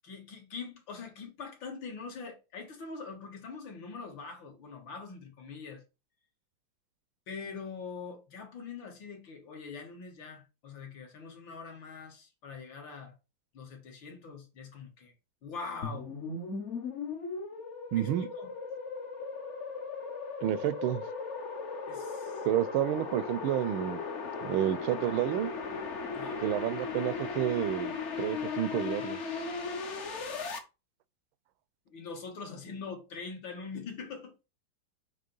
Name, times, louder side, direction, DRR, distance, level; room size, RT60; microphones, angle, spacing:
voice 1, 0.0-5.8 7.3-13.2 13.5-15.1 15.4-16.1 18.0-18.5 21.9-22.5 26.1-26.4 31.9-34.3, left 5 dB, 70° left, 2.2 m, -43 dB
sound 1, 15.8-30.6, left 4 dB, 50° left, 0.9 m, -37 dB
voice 2, 17.9-18.3 20.4-21.0 22.4-24.0 24.4-25.5 26.4-29.2, right 12 dB, 85° right, 1.4 m, -30 dB
6.6 x 2.9 x 5.3 m
omnidirectional pair, 2.2 m